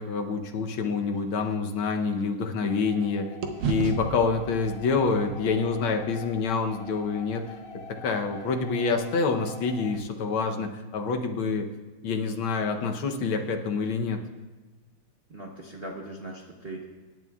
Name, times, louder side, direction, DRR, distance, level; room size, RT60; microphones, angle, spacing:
voice 1, 0.0-3.3 3.7-7.6 7.9-11.7 12.0-14.2, left 4 dB, 75° left, 4 dB, 1.7 m, -27 dB
sound 1, 0.7-3.0 3.4-7.7, right 6 dB, 85° right, 1.8 m, -37 dB
sound 2, 2.7-10.0, left 4 dB, 60° left, 1.4 m, -45 dB
voice 2, 15.3-16.8, right 1 dB, 45° right, -1 dB, 0.8 m, -39 dB
24.5 x 11.0 x 2.4 m, 1.2 s
omnidirectional pair, 2.3 m